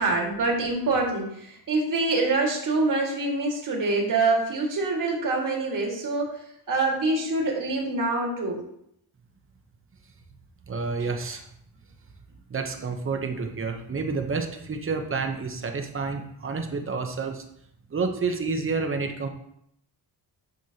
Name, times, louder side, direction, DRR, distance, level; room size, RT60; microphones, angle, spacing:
voice 1, 0.0-6.4 6.7-8.6, right 3 dB, 50° right, -1 dB, 2.0 m, -25 dB
voice 2, 10.7-11.5 12.5-17.4 17.9-19.3, right 4 dB, 30° right, 4 dB, 0.9 m, -29 dB
9.4 x 6.4 x 2.9 m, 0.73 s
wide cardioid pair, 170°, 40 cm